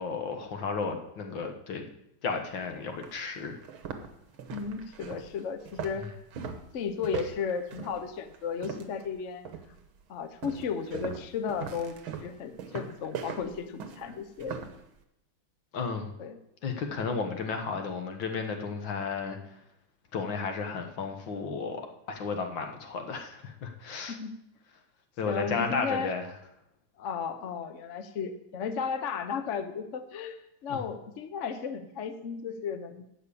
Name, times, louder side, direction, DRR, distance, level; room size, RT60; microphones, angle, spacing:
voice 1, 0.0-1.8 2.2-3.6 15.7-16.1 16.6-19.4 20.1-21.8 22.1-24.2 25.2-26.2 30.7-30.8, left 5 dB, 70° left, 5 dB, 2.0 m, -33 dB
sound 1, 2.4-2.5 3.0-3.1 3.6-9.1 9.4-9.8 10.4-14.8, right 7 dB, 90° right, 1.9 m, -40 dB
voice 2, 4.5-6.0 6.7-9.5 10.1-11.9 12.2-14.6 16.2-16.4 24.1-24.4 25.3-26.1 27.0-33.0, left 6 dB, 50° left, 9 dB, 0.9 m, -34 dB
12.5 x 5.5 x 8.4 m, 0.81 s
omnidirectional pair, 2.2 m